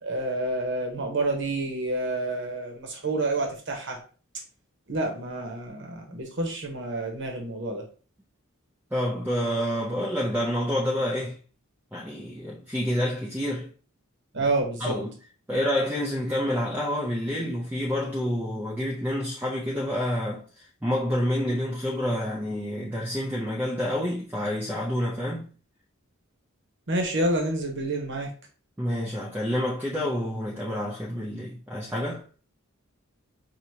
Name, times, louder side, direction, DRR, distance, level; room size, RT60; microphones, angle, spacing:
voice 1, 0.0-4.0 4.9-7.8 14.3-15.0 26.9-28.3, right 2 dB, 60° right, 1.0 m, -28 dB
voice 2, 8.9-11.4 11.9-13.7 14.4-14.5 14.8-15.2 15.5-20.5 20.8-25.5 28.8-32.2, equal, 10° right, 0.5 m, -28 dB
4.7 x 2.7 x 2.7 m
head